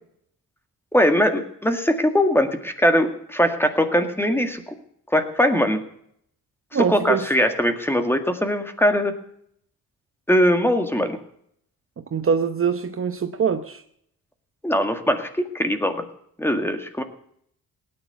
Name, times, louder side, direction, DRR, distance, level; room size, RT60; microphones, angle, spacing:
voice 1, 0.9-4.6 5.1-5.8 6.8-9.2 10.3-11.2 14.6-16.1 16.4-17.0, equal, 5° left, 7 dB, 1.9 m, -21 dB
voice 2, 6.7-7.3 12.1-13.8, right 6 dB, 35° right, 8 dB, 0.9 m, -23 dB
18.0 x 9.9 x 6.8 m, 0.68 s
cardioid pair, 115°, 36 cm